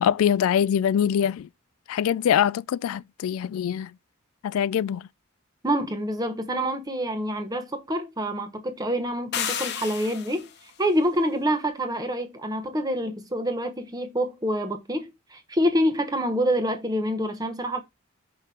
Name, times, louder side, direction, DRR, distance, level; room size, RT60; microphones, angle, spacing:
voice 1, 0.0-1.5 1.9-3.9 4.4-5.1, left 9 dB, 80° left, 0.3 m, -23 dB
voice 2, 5.6-10.5 10.8-17.8, equal, 20° right, 1.0 m, -26 dB
sound 1, 9.3-10.6, left 8 dB, 50° left, 1.0 m, -31 dB
5.8 x 5.4 x 3.7 m
head